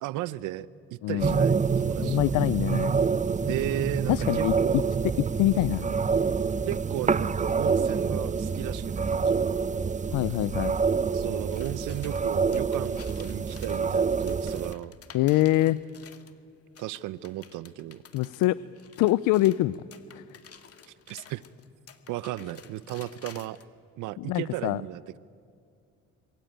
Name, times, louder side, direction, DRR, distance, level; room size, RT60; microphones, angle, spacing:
voice 1, 0.0-2.2 3.5-4.9 6.7-9.6 11.1-15.0 16.8-18.0 21.1-21.4 22.1-23.6 24.0-25.2, right 14 dB, 85° right, 17 dB, 0.7 m, -35 dB
voice 2, 1.0-1.4 2.0-3.0 4.1-4.8 5.2-5.9 10.1-10.8 15.1-15.8 18.1-18.6 19.0-19.8 20.1-20.2 24.2-24.8, left 16 dB, 80° left, 17 dB, 0.6 m, -24 dB
sound 1, 1.2-14.7, right 5 dB, 25° right, 0.8 m, -27 dB
sound 2, 11.5-16.4 16.8-23.7, left 7 dB, 50° left, 2.2 m, -52 dB
26.5 x 23.0 x 9.1 m, 2.3 s
supercardioid pair, 70°, 30 cm